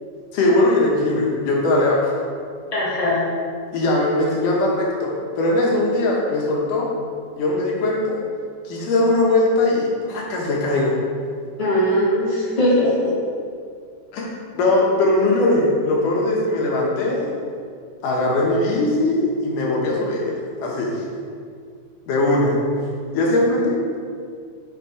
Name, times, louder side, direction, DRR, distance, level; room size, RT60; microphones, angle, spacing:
voice 1, 0.3-2.2 3.7-6.9 7.4-8.2 8.6-10.9 14.1-17.3 18.0-21.0 22.1-22.6 23.1-23.8, left 2 dB, 75° left, -2 dB, 2.8 m, -20 dB
voice 2, 2.7-3.2 11.6-13.1, left 1 dB, 60° left, -7 dB, 0.4 m, -20 dB
7.0 x 5.1 x 5.0 m, 2.1 s
omnidirectional pair, 3.8 m